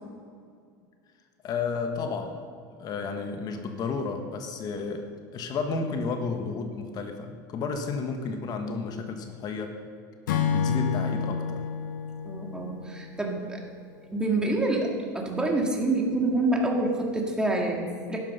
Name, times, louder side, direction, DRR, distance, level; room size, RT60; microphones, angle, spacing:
voice 1, 1.4-2.4 2.8-9.8 10.5-11.6, left 4 dB, 40° left, 5 dB, 1.5 m, -32 dB
Acoustic guitar / Strum, 10.3-13.7, left 7 dB, 80° left, 1.0 m, -29 dB
voice 2, 12.2-13.6 14.1-18.2, right 2 dB, 10° right, 0 dB, 2.3 m, -27 dB
12.0 x 8.9 x 5.7 m, 2.2 s
supercardioid pair, 105°, 10 cm